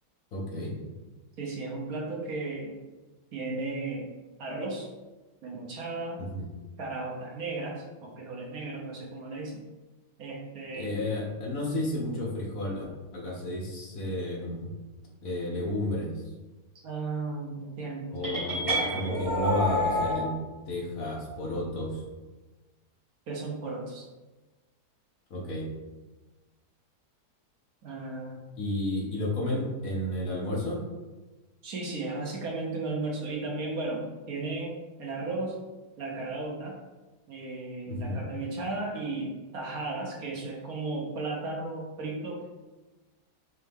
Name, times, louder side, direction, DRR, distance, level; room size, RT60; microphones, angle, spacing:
voice 1, 0.3-0.7 6.2-6.5 10.7-12.8 13.1-14.7 15.2-16.2 18.1-20.3 20.7-22.0 25.3-25.6 28.6-30.8 37.9-38.2, left 1 dB, 55° left, -3 dB, 1.3 m, -32 dB
voice 2, 1.4-2.7 3.3-4.1 4.4-4.9 5.4-6.2 6.8-9.6 10.2-10.9 16.8-18.4 23.3-24.0 27.8-28.4 31.6-34.7 35.0-35.5 36.0-36.7 37.3-42.4, right 3 dB, 60° right, -2 dB, 1.2 m, -35 dB
sound 1, 18.2-20.2, equal, 15° right, 1.0 m, -28 dB
4.3 x 3.4 x 3.5 m, 1.2 s
omnidirectional pair, 1.8 m